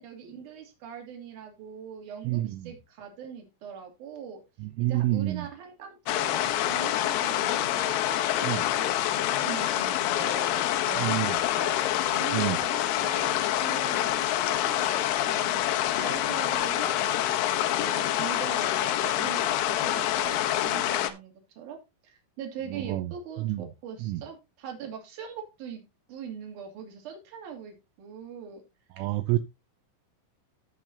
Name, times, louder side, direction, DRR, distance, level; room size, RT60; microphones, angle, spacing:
voice 1, 0.0-4.4 4.8-23.5 23.8-25.8 26.1-28.6, right 7 dB, 45° right, 3.5 m, -42 dB
voice 2, 2.2-2.7 4.6-5.5 8.4-8.7 11.0-11.4 12.3-12.6 22.7-23.1 23.4-23.7 24.0-24.2 29.0-29.4, right 16 dB, 80° right, 3.0 m, -28 dB
sound 1, 6.1-21.1, left 12 dB, 80° left, 3.4 m, -26 dB
16.5 x 6.0 x 2.7 m
omnidirectional pair, 5.7 m